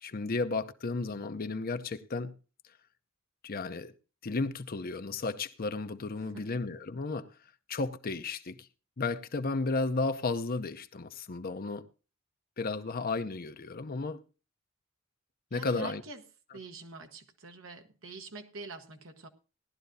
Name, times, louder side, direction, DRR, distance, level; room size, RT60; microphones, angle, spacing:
voice 1, 0.0-2.3 3.4-3.9 4.2-7.3 7.7-8.7 9.0-11.9 12.6-14.2 15.5-16.0, left 3 dB, 45° left, 0.7 m, -33 dB
voice 2, 15.5-16.2 16.5-19.3, right 3 dB, 75° right, 1.3 m, -45 dB
17.5 x 11.5 x 2.7 m
head